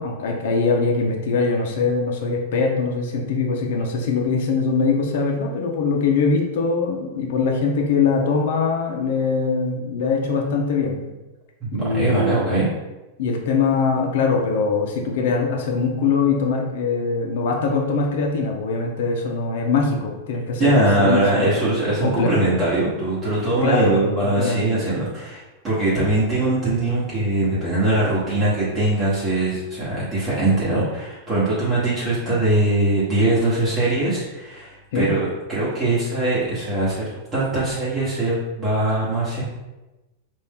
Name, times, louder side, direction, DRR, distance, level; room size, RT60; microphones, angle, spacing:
voice 1, 0.0-11.1 11.7-12.4 13.2-21.5 22.0-22.3 23.6-23.9 24.4-24.7 34.9-35.1, left 4 dB, 65° left, 0 dB, 0.8 m, -22 dB
voice 2, 11.6-12.7 20.6-39.4, right 2 dB, 20° right, -9 dB, 1.2 m, -21 dB
4.3 x 2.6 x 3.6 m, 1.1 s
supercardioid pair, 155°, 0 cm